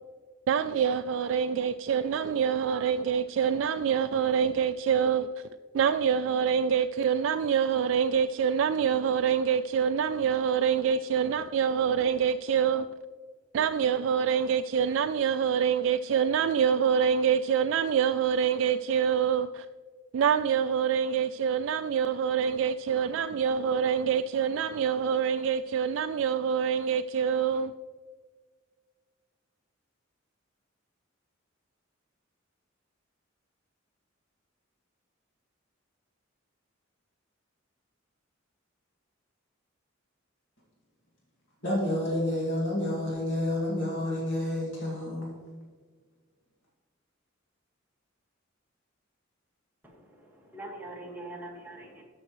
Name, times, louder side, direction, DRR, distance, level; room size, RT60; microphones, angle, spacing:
voice 1, 0.5-5.3 5.7-12.9 13.5-19.7 20.1-27.7, right 7 dB, 70° right, 0.3 m, -26 dB
voice 2, 41.6-45.3, left 1 dB, 65° left, 2.2 m, -29 dB
voice 3, 49.8-52.0, right 2 dB, 10° right, 1.7 m, -43 dB
13.0 x 6.2 x 3.1 m
head